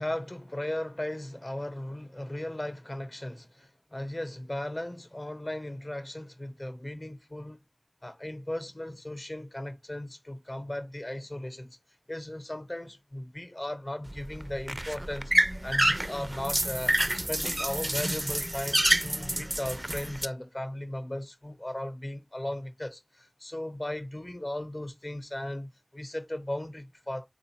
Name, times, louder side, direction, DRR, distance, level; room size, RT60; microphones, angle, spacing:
voice 1, 0.0-7.6 8.0-11.8 12.1-15.3 15.6-27.3, left 1 dB, 50° left, 0.8 m, -37 dB
sound 1, 14.1-20.3, right 1 dB, 30° right, 0.3 m, -28 dB
3.8 x 2.4 x 4.3 m
wide cardioid pair, 40°, 0 cm